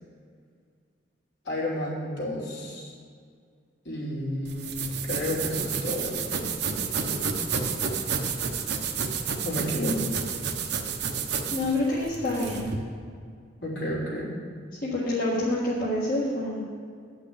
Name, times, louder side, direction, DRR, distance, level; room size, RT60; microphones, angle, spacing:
voice 1, 1.4-2.9 3.8-6.1 9.4-10.0 13.6-14.3, left 1 dB, 70° left, -4 dB, 3.1 m, -31 dB
sound 1, 4.5-12.8, right 6 dB, 60° right, 1.0 m, -30 dB
voice 2, 9.7-10.1 11.5-12.7 14.8-16.6, left 1 dB, 50° left, -7 dB, 1.7 m, -27 dB
9.4 x 5.9 x 8.4 m, 2.1 s
head